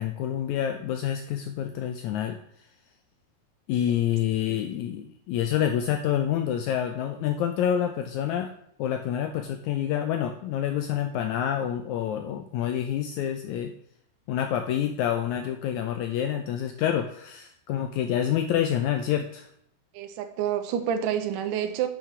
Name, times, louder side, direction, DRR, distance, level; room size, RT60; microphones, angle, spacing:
voice 1, 0.0-2.4 3.7-8.5 8.8-13.7 14.3-19.5, left 10 dB, 85° left, 6 dB, 1.7 m, -27 dB
voice 2, 19.9-21.9, right 9 dB, 80° right, 8 dB, 2.3 m, -28 dB
6.7 x 6.1 x 6.0 m, 0.68 s
omnidirectional pair, 3.9 m